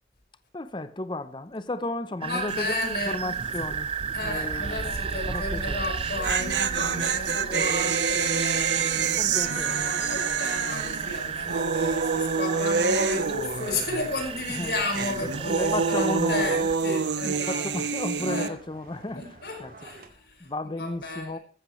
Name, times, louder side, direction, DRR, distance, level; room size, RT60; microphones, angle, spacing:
voice 1, 0.5-3.9 4.2-5.9 9.2-9.9 14.5-14.8 15.2-16.6 17.2-19.7 20.4-21.4, left 2 dB, 25° left, 0.7 m, -34 dB
voice 2, 2.2-3.6 4.1-17.7 18.2-18.6 19.1-20.5 20.8-21.4, left 2 dB, 65° left, 5.1 m, -33 dB
sound 1, 2.2-16.8, right 6 dB, 30° right, 0.5 m, -33 dB
sound 2, 2.5-2.8 3.1-3.2 5.8-14.2 14.5-18.5, right 5 dB, 80° right, 0.9 m, -27 dB
sound 3, 4.3-20.1, right 2 dB, 55° right, 2.4 m, -46 dB
15.5 x 14.5 x 3.2 m
head